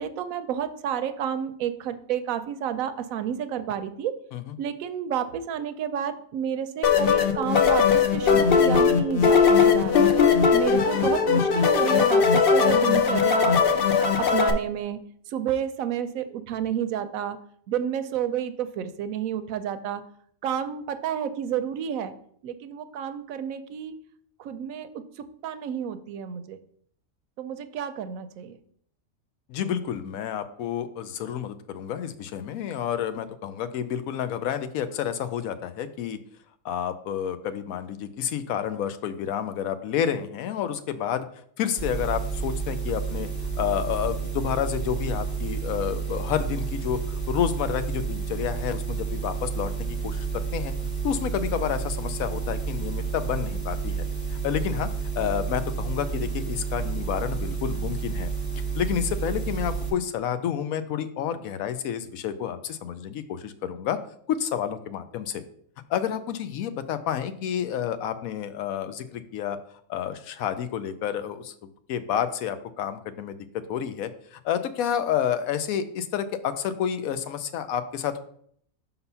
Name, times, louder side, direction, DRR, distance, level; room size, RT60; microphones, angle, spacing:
voice 1, 0.0-4.1 4.6-10.1 10.5-13.6 14.0-15.0 15.3-17.4 17.7-20.0 20.4-22.1 22.4-23.9 24.4-26.6 27.4-28.6, right 9 dB, 75° right, 11 dB, 1.0 m, -30 dB
sound 1, 6.8-14.5, left 6 dB, 50° left, 0.7 m, -19 dB
voice 2, 29.5-36.2 36.6-41.3 41.6-43.3 43.6-50.7 51.0-54.0 54.3-54.9 55.1-58.3 58.8-64.0 64.3-65.4 65.9-69.6 69.9-73.4 73.7-78.2, left 9 dB, 80° left, 10 dB, 1.0 m, -29 dB
sound 2, 41.8-59.9, right 5 dB, 30° left, 2.0 m, -30 dB
5.6 x 4.0 x 5.5 m, 0.63 s
omnidirectional pair, 1.5 m